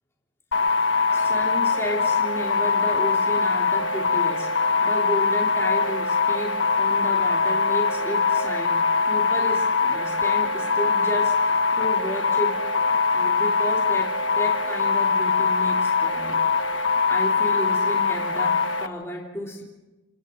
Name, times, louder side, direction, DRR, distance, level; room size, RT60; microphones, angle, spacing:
sound 1, 0.5-18.9, left 4 dB, 90° left, 1.4 m, -22 dB
voice 1, 1.1-12.6 13.1-16.4 17.1-19.6, equal, 15° left, -3 dB, 3.4 m, -33 dB
28.5 x 28.0 x 3.9 m, 1.1 s
head